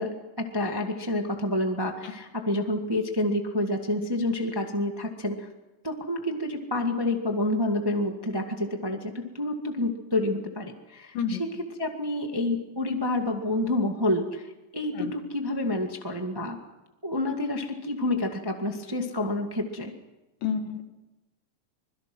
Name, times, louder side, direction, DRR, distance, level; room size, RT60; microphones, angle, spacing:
voice 1, 0.0-5.5 5.8-14.5 14.7-16.6 17.0-19.9, left 1 dB, 10° right, 3 dB, 1.1 m, -28 dB
voice 2, 20.4-20.8, left 6 dB, 85° left, 6 dB, 3.5 m, -28 dB
25.5 x 22.0 x 6.2 m, 1.1 s
omnidirectional pair, 3.8 m